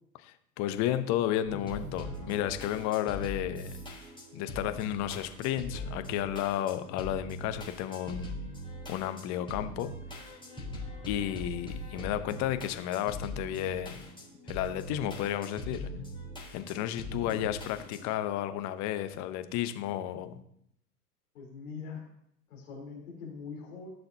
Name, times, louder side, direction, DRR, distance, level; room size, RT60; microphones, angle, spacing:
voice 1, 0.2-3.7 4.3-8.4 8.9-9.9 11.1-14.1 14.5-16.0 16.5-20.4, left 12 dB, 35° left, 10 dB, 0.9 m, -32 dB
sound 1, 1.4-18.0, equal, 10° left, 4.1 m, -41 dB
voice 2, 17.1-17.6 21.3-22.0 22.5-23.9, left 5 dB, 65° left, -3 dB, 3.8 m, -43 dB
15.0 x 6.7 x 2.9 m, 0.72 s
figure-of-eight pair, 95°, 47 cm